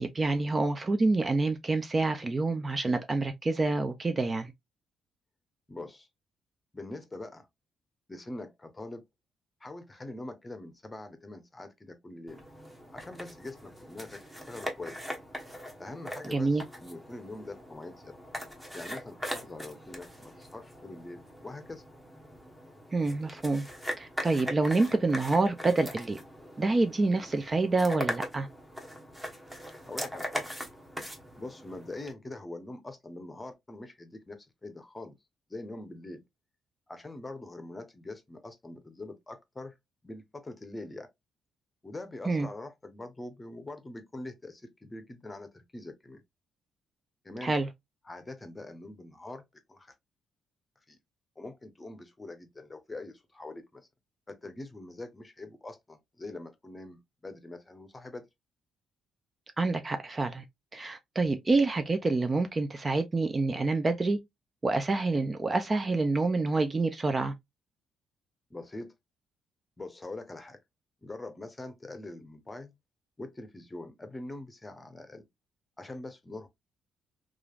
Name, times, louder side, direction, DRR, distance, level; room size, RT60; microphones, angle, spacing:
voice 1, 0.0-4.5 16.3-16.6 22.9-23.7 24.0-26.2 26.6-28.5 42.3-42.5 47.4-47.7 59.6-60.4 60.7-64.2 64.6-67.3, right 3 dB, 30° right, 0.4 m, -27 dB
voice 2, 5.7-6.1 6.7-7.5 8.1-9.0 9.6-12.4 12.9-15.0 15.8-18.1 18.7-21.8 29.6-30.5 31.4-35.2 35.5-36.2 36.9-39.8 40.0-41.1 41.8-46.2 47.2-47.5 48.1-49.4 49.7-49.9 50.9-51.0 51.4-53.9 54.3-58.3 68.5-68.9 69.8-70.6 71.0-72.8 73.2-75.2 75.8-76.5, left 2 dB, 20° left, 0.7 m, -43 dB
sound 1, 12.3-32.1, equal, 10° right, 1.0 m, -41 dB
3.1 x 2.4 x 2.3 m
cardioid pair, 90°, 0 cm